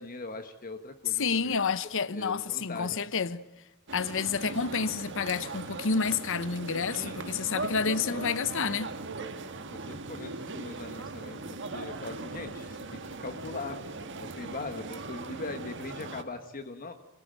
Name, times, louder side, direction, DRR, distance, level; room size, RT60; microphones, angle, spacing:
voice 1, 0.0-1.7 2.1-3.2 6.8-7.4 7.8-8.3 9.7-13.8 14.2-16.9, left 3 dB, 40° left, 1.3 m, -41 dB
voice 2, 1.1-3.4 3.9-8.9, left 5 dB, 65° left, 0.9 m, -29 dB
sound 1, 3.9-16.2, right 3 dB, 60° right, 1.6 m, -39 dB
26.0 x 16.0 x 9.1 m
head